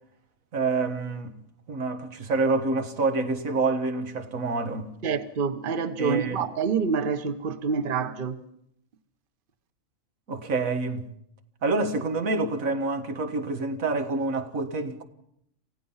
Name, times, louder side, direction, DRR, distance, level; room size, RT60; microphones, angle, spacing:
voice 1, 0.5-1.4 1.7-4.9 6.0-6.5 10.3-11.1 11.6-15.0, right 3 dB, 85° right, 2.0 m, -27 dB
voice 2, 5.0-8.4, right 5 dB, 45° right, 1.2 m, -27 dB
28.0 x 16.0 x 5.7 m
omnidirectional pair, 1.4 m